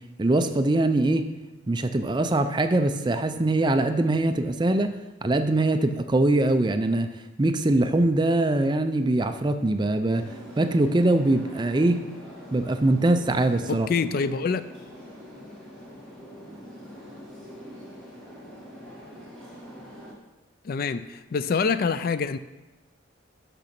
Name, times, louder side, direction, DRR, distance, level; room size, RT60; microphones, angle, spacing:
voice 1, 0.2-1.3 1.7-4.9 5.2-7.1 7.4-10.2 10.6-12.1 12.5-13.9, right 2 dB, 20° right, 8 dB, 0.4 m, -22 dB
sound 1, 10.1-20.1, equal, 5° left, 2.0 m, -44 dB
voice 2, 13.7-14.6 20.6-22.4, left 5 dB, 50° left, 13 dB, 0.3 m, -26 dB
6.7 x 6.3 x 5.9 m, 1.1 s
head